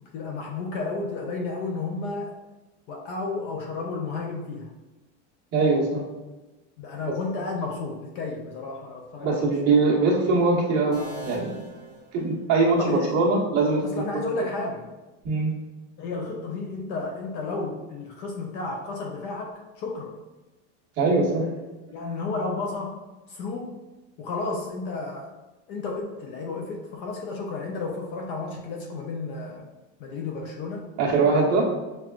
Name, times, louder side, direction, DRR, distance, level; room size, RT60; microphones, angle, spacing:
voice 1, 0.1-2.3 2.9-4.7 6.8-9.3 12.6-13.2 13.8-14.9 16.0-20.1 21.9-23.0 23.3-23.7 24.2-25.3 25.7-29.7 30.0-30.9, left 3 dB, 35° left, 0 dB, 0.4 m, -32 dB
voice 2, 5.5-6.1 9.2-11.6 12.1-14.0 15.2-15.5 21.0-21.5 31.0-31.7, right 3 dB, 45° right, -4 dB, 1.2 m, -22 dB
sound 1, 10.9-12.8, right 1 dB, 10° right, 1.1 m, -41 dB
6.0 x 2.3 x 2.4 m, 1.1 s
supercardioid pair, 160°, 35 cm